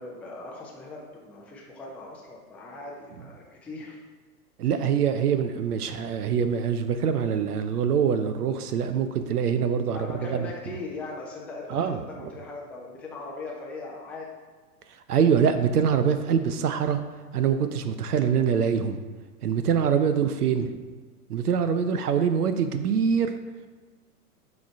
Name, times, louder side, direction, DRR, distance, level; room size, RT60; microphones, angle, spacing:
voice 1, 0.0-4.0 9.9-14.3 17.8-18.0, left 2 dB, 5° left, -3 dB, 0.5 m, -39 dB
voice 2, 4.6-10.0 10.3-10.4 11.7-12.0 15.1-17.0 17.3-19.0 19.4-20.8 21.3-23.4, right 7 dB, 75° right, 9 dB, 0.6 m, -24 dB
7.1 x 3.2 x 4.4 m, 1.4 s
hypercardioid pair, 105°, 47 cm